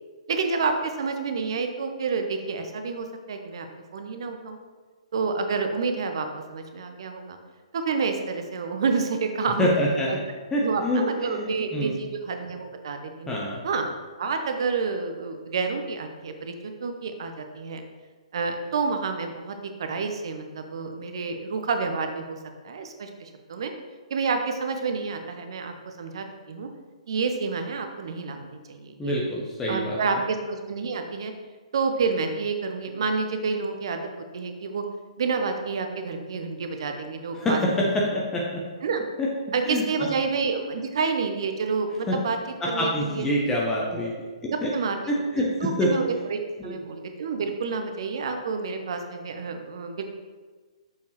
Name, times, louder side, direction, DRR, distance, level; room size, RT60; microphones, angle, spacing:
voice 1, 0.3-3.7 3.9-4.6 5.1-7.4 7.7-9.7 10.1-10.2 10.6-13.3 13.6-13.9 14.2-17.8 18.3-22.4 22.6-23.7 24.1-26.7 27.1-29.1 29.7-31.3 31.7-34.8 35.2-37.6 38.1-38.2 38.8-39.0 39.5-42.4 42.7-43.3 44.5-45.1 45.6-50.0, right 4 dB, 50° right, 6 dB, 0.7 m, -29 dB
voice 2, 9.6-10.1 10.5-11.5 11.7-11.9 13.3-13.6 29.0-30.0 37.4-38.7 39.2-39.3 39.7-39.8 42.1-42.2 42.6-44.1 44.6-44.7 45.1-45.9 46.6-46.8, equal, 10° left, -4 dB, 0.7 m, -25 dB
6.7 x 5.4 x 3.1 m, 1.4 s
figure-of-eight pair, 125°, 3 cm